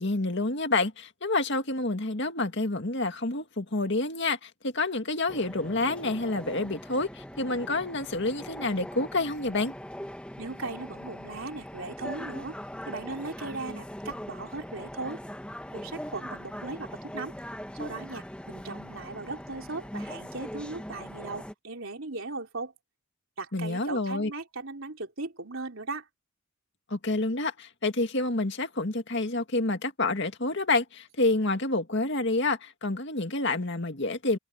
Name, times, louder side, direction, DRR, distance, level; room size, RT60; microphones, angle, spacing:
voice 1, 0.0-9.7 23.5-24.3 26.9-34.4, left 2 dB, 55° left, 2.1 m, -28 dB
sound 1, 5.3-21.5, equal, 5° left, 1.4 m, -41 dB
voice 2, 10.4-12.6 12.9-15.2 15.7-17.3 17.7-22.7 23.4-26.1, right 3 dB, 65° right, 3.5 m, -38 dB
head